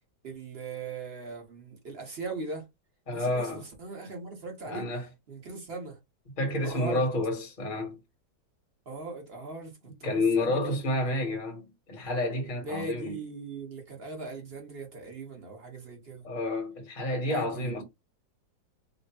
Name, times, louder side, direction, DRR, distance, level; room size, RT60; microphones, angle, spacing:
voice 1, 0.2-2.7 3.1-4.9 5.3-6.0 6.6-7.0 8.8-11.1 12.6-16.3 17.3-17.8, right 3 dB, 35° right, 1.4 m, -39 dB
voice 2, 3.1-3.6 4.6-5.1 6.4-8.0 10.0-13.2 16.2-17.8, left 2 dB, 30° left, 1.2 m, -29 dB
4.1 x 2.4 x 3.5 m
omnidirectional pair, 2.0 m